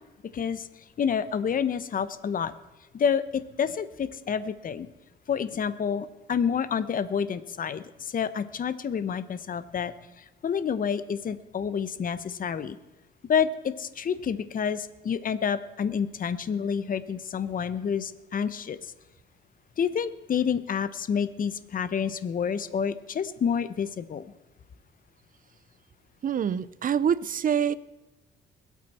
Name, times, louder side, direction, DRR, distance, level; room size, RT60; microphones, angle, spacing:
voice 1, 0.3-0.7 1.0-2.5 2.9-4.9 5.3-12.8 13.3-18.9 19.8-24.2, left 7 dB, 45° left, 14 dB, 0.8 m, -29 dB
voice 2, 26.2-27.7, right 8 dB, 45° right, 17 dB, 0.6 m, -25 dB
22.0 x 8.3 x 4.3 m, 1.1 s
cardioid pair, 90°, 20 cm